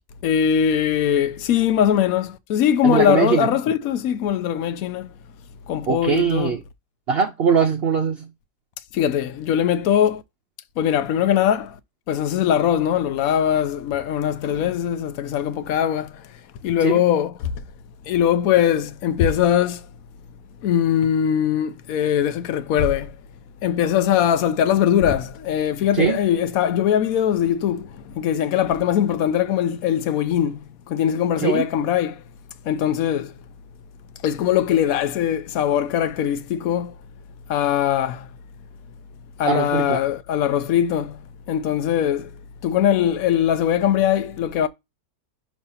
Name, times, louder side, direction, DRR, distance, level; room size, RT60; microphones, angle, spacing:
voice 1, 0.2-5.1 5.7-6.6 8.9-10.2 10.8-11.8 12.1-16.2 16.6-17.5 18.1-19.8 20.6-23.2 23.6-32.2 32.7-33.3 34.2-36.9 37.5-38.3 39.4-41.2 41.5-42.3 42.6-44.7, left 9 dB, 65° left, 1.0 m, -21 dB
voice 2, 2.8-3.5 5.9-6.6 7.1-8.3 16.8-17.0 25.9-26.2 31.4-31.6 39.4-40.0, right 7 dB, 60° right, 0.6 m, -21 dB
6.2 x 3.2 x 5.5 m
omnidirectional pair, 1.8 m